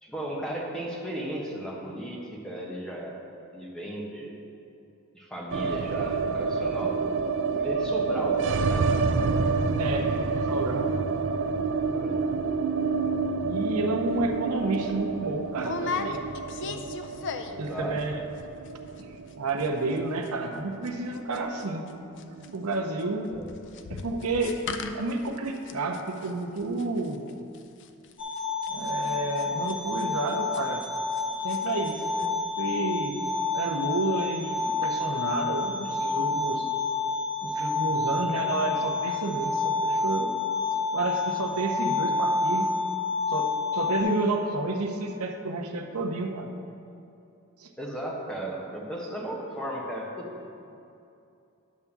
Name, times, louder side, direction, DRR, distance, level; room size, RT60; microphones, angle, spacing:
voice 1, 0.0-3.2 3.5-4.3 5.1-7.2 7.6-9.0 11.9-12.3 14.1-14.2 17.5-18.0 23.3-23.7 43.9-44.1 47.8-50.3, right 1 dB, 5° left, -3 dB, 1.1 m, -35 dB
sound 1, 5.5-21.6 21.9-22.0 22.2-23.0, right 4 dB, 60° right, 0.4 m, -28 dB
voice 2, 9.8-10.9 13.4-16.2 16.6-16.8 17.6-18.2 19.0-21.9 22.2-23.4 23.9-24.6 24.9-27.2 28.7-30.8 31.4-33.2 33.5-36.7 37.4-40.3 40.9-42.7 43.3-46.5 47.6-47.7, right 2 dB, 90° right, 3 dB, 0.7 m, -30 dB
sound 2, 14.2-14.4 14.7-14.9 15.6-17.7 18.0-18.4 18.7-18.8 19.0-19.3 19.6-31.2 31.5-31.9 32.2-32.3, left 4 dB, 55° left, 0.4 m, -38 dB
sound 3, 28.2-44.0, left 4 dB, 25° left, 1.9 m, -29 dB
10.5 x 3.5 x 7.1 m, 2.6 s
head